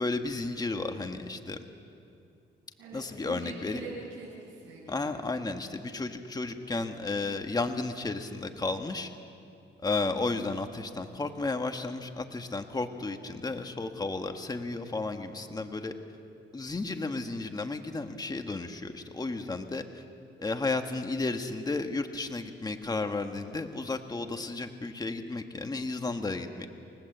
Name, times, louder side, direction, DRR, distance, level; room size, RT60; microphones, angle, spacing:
voice 1, 0.0-1.6 2.9-3.8 4.9-9.1 9.8-15.9 16.5-20.0 20.4-26.7, left 3 dB, 20° left, 6 dB, 1.5 m, -33 dB
voice 2, 2.8-5.4, right 4 dB, 75° right, -8 dB, 7.7 m, -44 dB
29.0 x 19.0 x 8.0 m, 2.6 s
cardioid pair, 90°, 20 cm